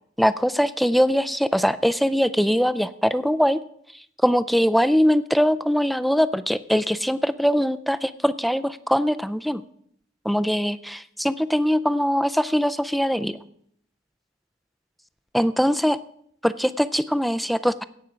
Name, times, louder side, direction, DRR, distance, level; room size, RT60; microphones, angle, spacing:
voice 1, 0.2-3.6 4.2-9.6 10.2-13.4 15.3-16.0 16.4-17.8, equal, ahead, 14 dB, 0.3 m, -22 dB
17.0 x 5.7 x 5.0 m, 0.68 s
head